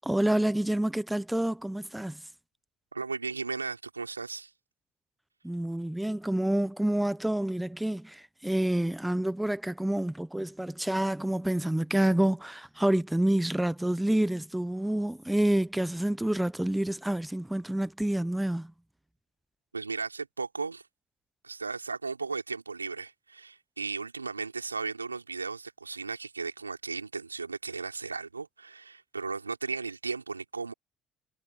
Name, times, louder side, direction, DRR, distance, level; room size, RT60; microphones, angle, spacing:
voice 1, 0.0-2.2 5.4-18.7, right 1 dB, 5° right, 1.1 m, -28 dB
voice 2, 2.9-4.5 19.7-20.8 21.4-30.7, right 4 dB, 90° right, 3.8 m, -36 dB
figure-of-eight pair, 50°, 0 cm